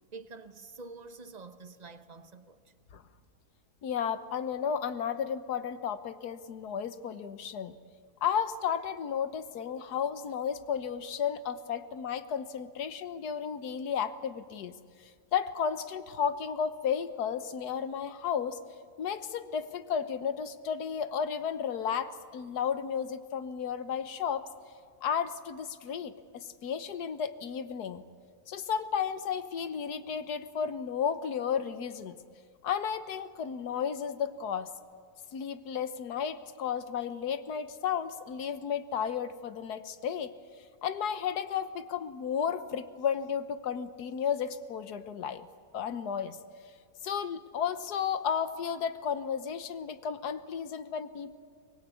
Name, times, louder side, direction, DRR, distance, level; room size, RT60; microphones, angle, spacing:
voice 1, 0.1-2.7, right 3 dB, 35° right, 0.9 m, -47 dB
voice 2, 3.8-7.7 8.2-14.7 15.3-18.6 19.0-24.4 25.0-28.0 28.5-32.2 32.6-34.7 35.3-40.3 40.8-45.5 45.7-46.4 47.0-51.3, left 7 dB, 85° left, 1.5 m, -33 dB
24.0 x 20.0 x 8.3 m
omnidirectional pair, 1.7 m